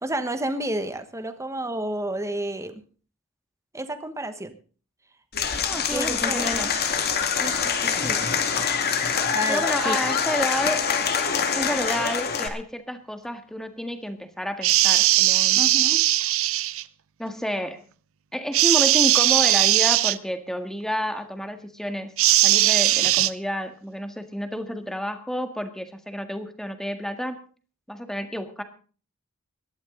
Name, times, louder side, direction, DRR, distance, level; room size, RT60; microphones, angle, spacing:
voice 1, 0.0-2.8 3.7-4.6 5.9-6.6 7.4-8.3 9.3-10.0 15.6-16.0, right 1 dB, 15° right, 9 dB, 1.2 m, -31 dB
Applause / Crowd, 5.3-12.5, left 6 dB, 50° left, 2.1 m, -25 dB
voice 2, 5.6-6.7 9.5-10.9 11.5-15.6 17.2-17.8 18.3-22.1 22.4-27.4 27.9-28.6, equal, ahead, 7 dB, 1.7 m, -30 dB
sound 1, 14.6-16.8 18.5-20.2 22.2-23.3, right 15 dB, 65° right, 0.6 m, -19 dB
19.5 x 12.5 x 3.8 m, 0.40 s
head